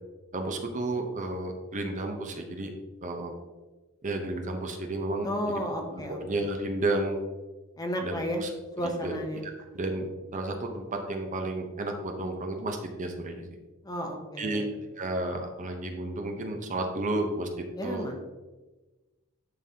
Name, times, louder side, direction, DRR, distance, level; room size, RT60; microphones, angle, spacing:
voice 1, 0.3-2.7 3.0-3.3 4.0-5.3 5.9-7.2 8.0-8.5 9.0-9.2 9.4-13.4 14.4-14.7 15.0-17.5 17.8-18.1, right 2 dB, 35° right, 4 dB, 0.7 m, -32 dB
voice 2, 5.2-6.2 7.8-8.4 8.8-9.4 13.8-14.6 17.8-18.2, equal, 20° left, 2 dB, 0.8 m, -32 dB
11.0 x 3.9 x 2.8 m, 1.2 s
head